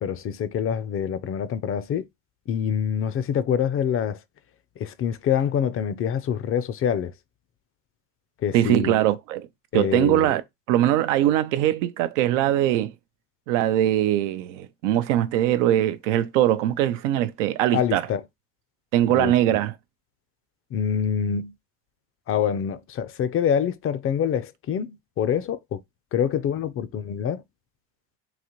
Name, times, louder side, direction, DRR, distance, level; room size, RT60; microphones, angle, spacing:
voice 1, 0.0-2.1 2.5-4.2 4.8-7.1 8.4-9.0 9.7-10.3 17.7-18.2 19.1-19.3 20.7-21.5 22.3-25.8 26.1-27.4, left 8 dB, 40° left, 0.5 m, -26 dB
voice 2, 8.5-9.5 9.7-10.4 10.7-12.9 13.5-18.0 18.9-19.7, right 12 dB, 85° right, 0.6 m, -21 dB
3.9 x 2.5 x 3.0 m
supercardioid pair, 90°, 36 cm